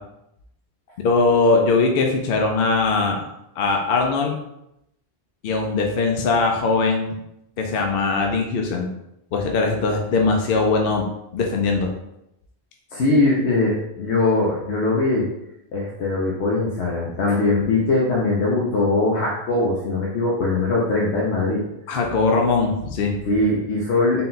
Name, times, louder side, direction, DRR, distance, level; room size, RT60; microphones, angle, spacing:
voice 1, 1.0-3.2 3.6-4.4 5.4-7.1 7.6-8.9 9.3-11.0 11.3-11.9 21.9-23.1, left 3 dB, 65° left, 1 dB, 0.7 m, -20 dB
voice 2, 12.9-15.3 15.7-21.6 23.3-24.2, left 2 dB, 85° left, -5 dB, 1.0 m, -21 dB
3.9 x 2.2 x 3.8 m, 0.84 s
omnidirectional pair, 1.1 m